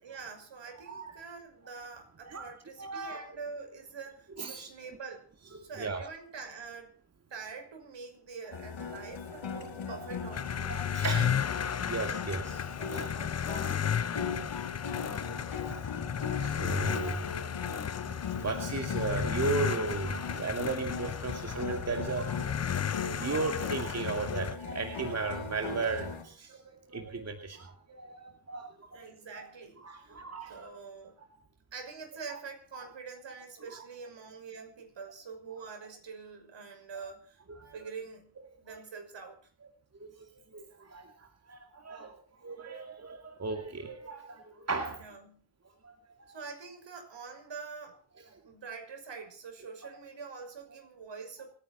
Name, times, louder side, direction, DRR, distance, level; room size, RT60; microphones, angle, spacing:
voice 1, 0.0-5.3 5.6-7.0 7.3-10.7 11.9-12.0 28.9-31.2 31.7-37.4 37.7-38.3 38.6-39.4 45.0-45.4 46.3-48.0 48.4-51.5, right 5 dB, 60° right, 6.0 m, -45 dB
voice 2, 0.9-1.2 2.3-2.4 2.8-3.2 4.4-4.7 5.8-6.0 9.5-9.6 9.9-10.0 10.6-11.4 11.9-13.9 15.0-17.2 18.3-22.7 23.2-26.6 26.9-29.1 29.3-29.5 29.8-30.7 32.3-32.4 33.8-33.9 37.5-37.7 38.7-38.8 40.0-42.1 42.4-45.0 45.8-46.0 46.3-46.4, right 4 dB, 30° right, 2.4 m, -36 dB
sound 1, 8.5-26.2, left 6 dB, 65° left, 5.1 m, -39 dB
sound 2, 10.3-24.6, left 8 dB, 30° left, 0.7 m, -34 dB
27.5 x 10.0 x 4.4 m
cardioid pair, 95°, 49 cm